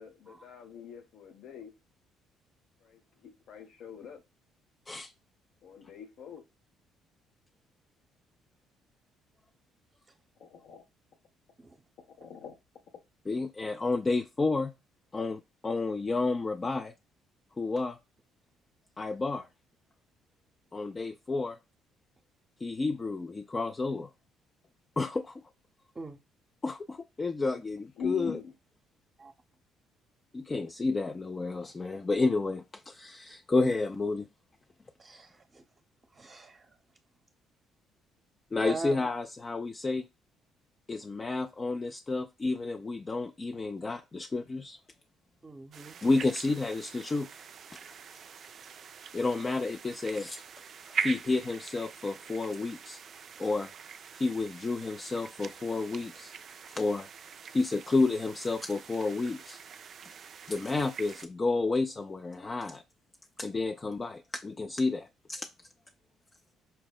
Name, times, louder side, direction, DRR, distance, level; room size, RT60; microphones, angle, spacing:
voice 1, 0.0-1.7 2.8-4.2 5.6-6.4 10.4-10.8 12.2-12.6 28.0-28.5, left 6 dB, 65° left, 0.7 m, -42 dB
voice 2, 13.3-14.7 15.1-16.9 17.6-18.0 19.0-19.5 20.7-21.6 22.6-24.1 25.0-25.4 26.6-28.4 30.3-34.3 38.5-40.1 40.9-44.8 46.0-47.3 49.1-50.4 50.9-53.0 53.4-53.7 54.1-56.3 56.7-57.1 57.5-59.6 60.5-62.8 63.4-65.5, left 3 dB, 30° left, 0.4 m, -31 dB
voice 3, 35.0-35.6 36.1-36.8 38.6-39.1 45.4-46.0, right 3 dB, 30° right, 0.7 m, -42 dB
sound 1, 45.7-61.3, right 6 dB, 50° right, 0.3 m, -43 dB
5.5 x 2.0 x 2.3 m
hypercardioid pair, 50°, 0 cm